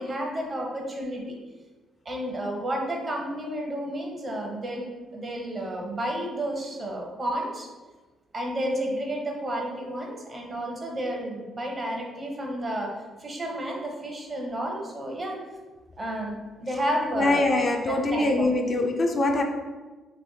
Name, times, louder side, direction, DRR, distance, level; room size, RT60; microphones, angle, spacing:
voice 1, 0.0-1.4 2.0-4.9 5.1-7.7 8.3-12.9 13.2-15.4 16.0-18.5, right 1 dB, 30° right, 0 dB, 0.8 m, -31 dB
voice 2, 17.1-19.4, left 2 dB, 40° left, 3 dB, 0.4 m, -23 dB
3.3 x 3.0 x 2.7 m, 1.3 s
cardioid pair, 90°, 0 cm